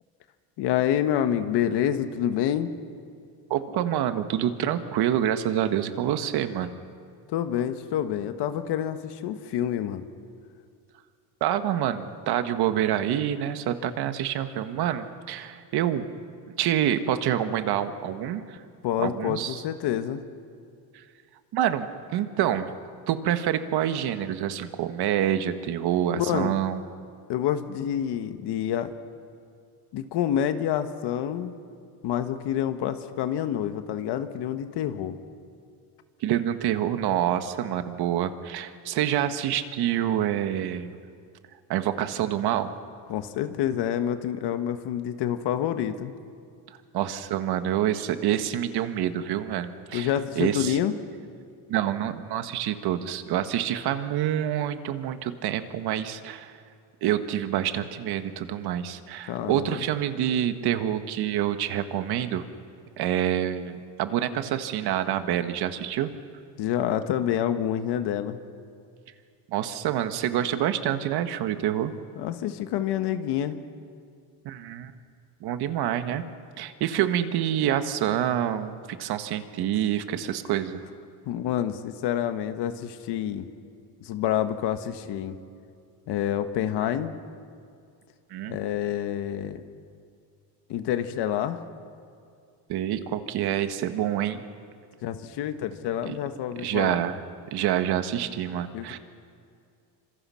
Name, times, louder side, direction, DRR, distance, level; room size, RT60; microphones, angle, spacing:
voice 1, 0.6-2.7 7.3-10.0 18.8-20.2 26.2-26.5 27.3-28.9 29.9-31.5 32.0-35.2 43.1-46.1 49.9-50.9 59.3-59.8 66.6-68.4 72.2-73.6 81.2-83.5 84.0-85.4 86.1-87.2 88.5-89.6 90.7-91.6 95.0-97.0 98.7-99.0, left 10 dB, 70° left, 9 dB, 1.5 m, -27 dB
voice 2, 3.5-6.7 11.4-16.1 16.6-18.6 19.0-19.6 20.9-21.0 21.5-22.7 23.1-26.8 36.2-40.9 41.7-42.7 46.7-50.8 51.7-56.6 57.0-62.4 63.0-66.1 69.5-71.9 74.4-74.9 75.4-76.2 76.6-80.8 88.3-88.6 92.7-94.4 96.0-96.2 96.6-97.2 97.5-99.0, right 11 dB, 65° right, 9 dB, 1.6 m, -27 dB
28.5 x 26.0 x 5.8 m, 2.3 s
cardioid pair, 160°, 42 cm